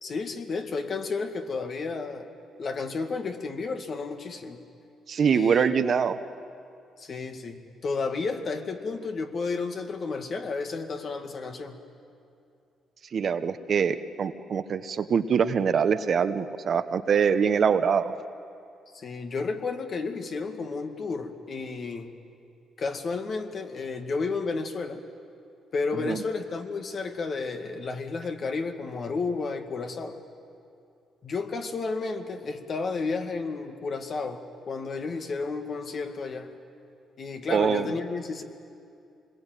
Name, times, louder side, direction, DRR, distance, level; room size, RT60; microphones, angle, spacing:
voice 1, 0.0-2.3 2.6-4.6 5.3-5.7 7.0-11.8 18.9-22.2 22.8-25.0 25.7-30.2 31.2-36.5 37.2-38.4, left 4 dB, 50° left, 5 dB, 2.1 m, -32 dB
voice 2, 5.1-6.2 13.1-18.1 26.0-26.2 37.5-37.9, right 6 dB, 55° right, 10 dB, 1.1 m, -24 dB
26.5 x 21.0 x 9.2 m, 2.5 s
cardioid pair, 90°, 0 cm